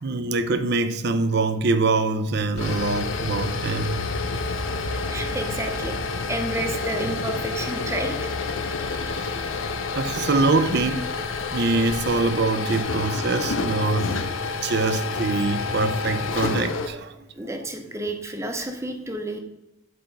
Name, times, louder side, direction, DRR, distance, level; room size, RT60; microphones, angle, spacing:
voice 1, 0.0-4.0 9.0-9.4 10.0-11.1 11.5-14.1 14.5-17.3, right 3 dB, 55° right, 0.6 m, -24 dB
sound 1, 2.4-16.9, left 3 dB, 70° left, 0.7 m, -28 dB
voice 2, 4.3-6.0 6.3-8.3 17.3-19.4, right 1 dB, 15° right, 0.8 m, -31 dB
9.2 x 4.5 x 5.2 m
head